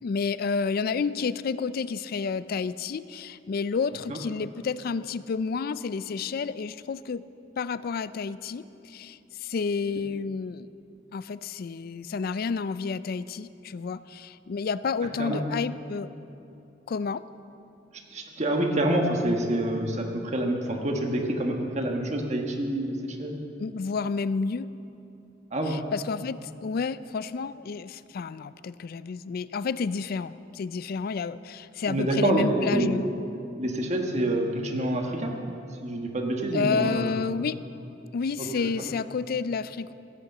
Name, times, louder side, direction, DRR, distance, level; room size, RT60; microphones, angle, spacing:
voice 1, 0.0-7.2 7.6-10.7 11.1-16.1 16.9-17.2 23.6-24.7 25.6-33.0 36.5-37.6 38.1-39.9, left 5 dB, 55° left, 15 dB, 0.4 m, -30 dB
voice 2, 18.1-23.4 25.5-25.8 31.9-33.0 33.6-35.3 35.8-37.1 38.4-38.5, right 1 dB, 40° right, 2 dB, 1.4 m, -27 dB
16.0 x 8.4 x 7.1 m, 2.7 s
head